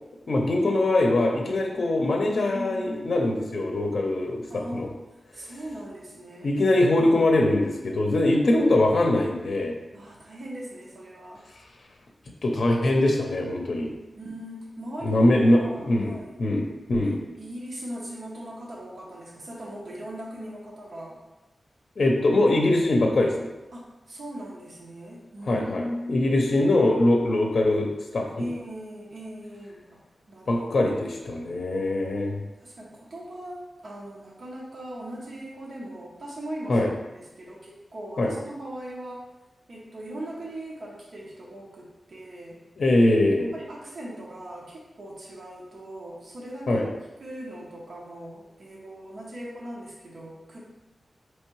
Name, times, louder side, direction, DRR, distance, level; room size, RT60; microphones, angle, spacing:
voice 1, 0.3-4.9 6.4-9.8 12.4-13.9 15.0-15.6 15.9-17.2 22.0-23.5 25.5-25.8 26.1-28.4 30.5-32.4 36.7-36.9 38.2-38.3 42.8-43.5 46.7-46.9, left 1 dB, 65° left, 1 dB, 0.6 m, -22 dB
voice 2, 2.5-3.1 4.5-6.8 9.9-11.5 14.2-16.4 17.0-21.2 23.7-26.6 28.4-30.0 30.3-30.9 32.6-36.8 37.1-39.3 39.7-42.6 43.4-46.9 47.2-50.6, equal, 65° right, -4 dB, 0.8 m, -39 dB
4.4 x 3.1 x 3.1 m, 1.0 s
wide cardioid pair, 115°, 0 cm